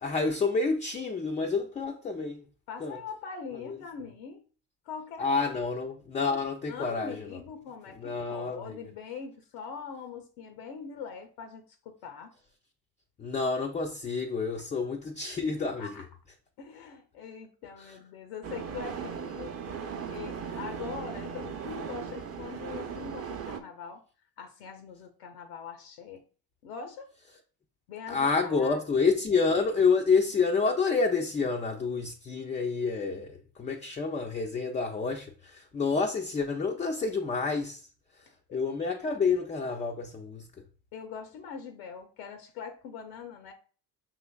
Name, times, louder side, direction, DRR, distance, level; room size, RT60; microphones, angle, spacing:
voice 1, 0.0-2.4 2.8-3.0 3.7-3.8 5.2-7.4 8.0-8.8 13.2-16.0 17.8-18.0 28.1-37.9 38.5-40.5, left 4 dB, 15° left, 0.4 m, -28 dB
voice 2, 2.7-4.4 4.9-5.6 6.7-12.3 14.6-14.7 15.8-16.0 16.6-19.6 20.1-24.0 24.4-26.2 26.6-27.1 27.9-28.8 38.5-38.6 40.9-43.5, left 6 dB, 75° left, 0.7 m, -42 dB
sound 1, 18.4-23.6, right 7 dB, 30° right, 0.7 m, -38 dB
5.7 x 3.0 x 2.3 m
hypercardioid pair, 65°, 49 cm